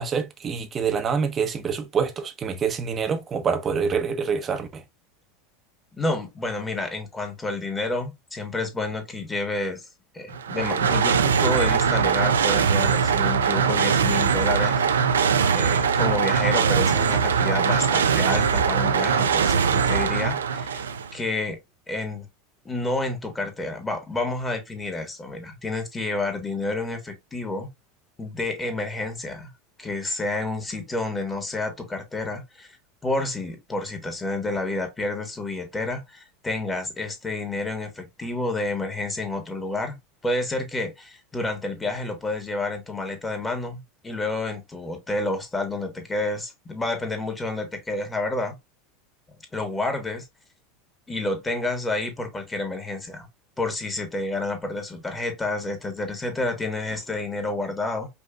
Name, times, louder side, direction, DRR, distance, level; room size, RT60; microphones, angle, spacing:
voice 1, 0.0-4.8, right 6 dB, 30° right, 0.9 m, -26 dB
voice 2, 5.9-9.9 10.1-14.8 15.5-20.7 21.1-21.6 21.9-22.3 22.6-27.7 28.2-29.5 29.8-32.8 33.0-40.0 40.2-48.5 49.5-50.3 51.1-53.3 53.6-58.1, left 2 dB, 15° left, 1.7 m, -29 dB
sound 1, 10.3-21.1, right 6 dB, 85° right, 0.5 m, -21 dB
5.3 x 2.9 x 2.4 m
hypercardioid pair, 85°, 0 cm